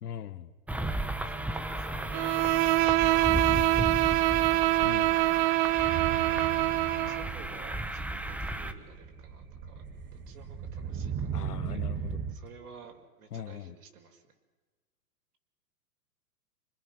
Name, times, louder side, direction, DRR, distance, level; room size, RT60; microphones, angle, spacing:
voice 1, 0.0-0.5 4.8-5.2 11.3-12.2 13.3-13.8, left 9 dB, 75° left, 13 dB, 1.6 m, -40 dB
sound 1, 0.7-8.7, right 1 dB, 5° right, 1.1 m, -35 dB
voice 2, 1.2-3.3 6.3-9.8 10.1-14.2, right 5 dB, 70° right, 3 dB, 5.3 m, -52 dB
Bowed string instrument, 2.1-7.3, right 16 dB, 45° right, 0.7 m, -25 dB
sound 2, 5.7-12.3, right 7 dB, 25° right, 2.3 m, -37 dB
28.5 x 25.5 x 6.2 m, 1.3 s
hypercardioid pair, 115°, 47 cm